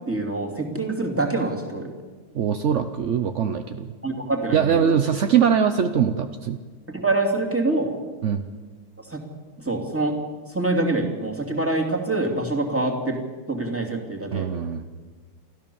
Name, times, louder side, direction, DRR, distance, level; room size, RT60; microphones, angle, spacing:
voice 1, 0.1-1.9 4.0-5.0 6.9-7.9 9.1-9.2 9.6-10.2 10.5-13.2 13.5-14.5, right 2 dB, 5° right, 1 dB, 2.7 m, -25 dB
voice 2, 2.3-3.9 4.5-6.6 8.2-8.4 14.3-14.8, right 8 dB, 65° right, 8 dB, 0.7 m, -22 dB
28.5 x 13.5 x 7.1 m, 1.4 s
omnidirectional pair, 2.2 m